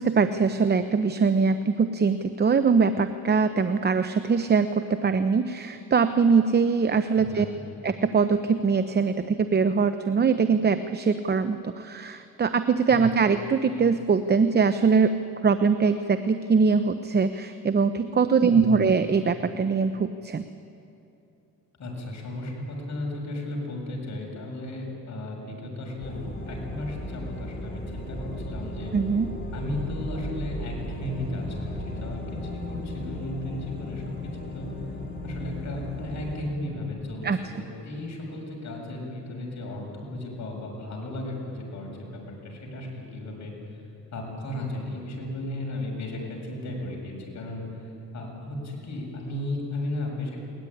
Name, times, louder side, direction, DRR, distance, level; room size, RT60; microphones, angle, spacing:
voice 1, 0.0-7.5 7.8-15.2 15.4-20.5 28.9-29.3 37.2-37.4, right 5 dB, 30° right, 10 dB, 0.8 m, -22 dB
voice 2, 7.2-7.6 12.9-13.1 18.4-18.9 21.8-28.9 29.5-34.7 35.2-37.3 37.6-43.8 44.1-50.5, left 1 dB, 60° left, -1 dB, 7.4 m, -35 dB
sound 1, 26.0-36.4, left 1 dB, 30° left, 5.2 m, -36 dB
21.5 x 19.0 x 10.0 m, 2.7 s
cardioid pair, 100°, 32 cm